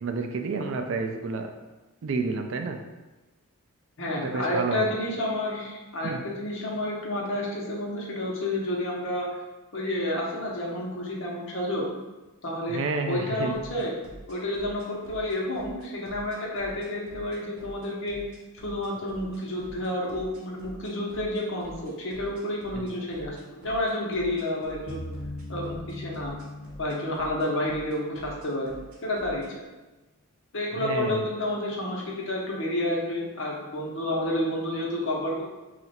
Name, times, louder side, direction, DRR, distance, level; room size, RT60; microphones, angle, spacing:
voice 1, 0.0-1.5 2.0-2.8 4.2-4.9 6.0-6.2 12.7-13.6 22.7-22.9 30.7-31.2, right 4 dB, 60° right, 5 dB, 0.4 m, -30 dB
voice 2, 4.0-9.3 9.7-11.9 12.4-14.0 14.3-18.2 18.6-25.0 25.5-26.3 26.8-28.7 29.0-29.4 30.5-35.4, left 1 dB, 60° left, -3 dB, 0.8 m, -30 dB
sound 1, 13.5-29.5, equal, 75° right, 0.8 m, -47 dB
sound 2, 24.9-28.6, left 2 dB, 85° left, 1.2 m, -40 dB
3.0 x 2.4 x 4.2 m, 1.1 s
head